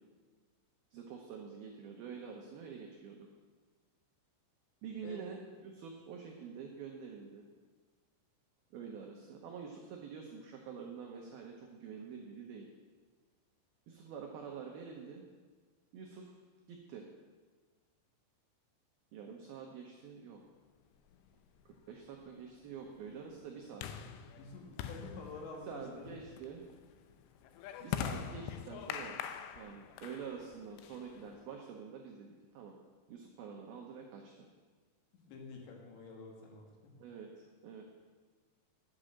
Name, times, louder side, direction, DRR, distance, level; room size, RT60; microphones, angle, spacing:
voice 1, 0.9-3.3 4.8-7.4 8.7-12.7 13.9-15.2 15.9-16.4 16.7-17.0 19.1-20.4 21.7-23.9 25.6-26.6 27.8-32.8 33.1-34.5 37.0-37.8, right 6 dB, 80° right, 1 dB, 2.2 m, -47 dB
sound 1, 21.1-31.5, left 9 dB, 85° left, 2.5 m, -44 dB
voice 2, 24.4-26.2 35.3-36.9, left 3 dB, 70° left, 1 dB, 3.7 m, -48 dB
11.0 x 6.8 x 7.5 m, 1.4 s
omnidirectional pair, 5.6 m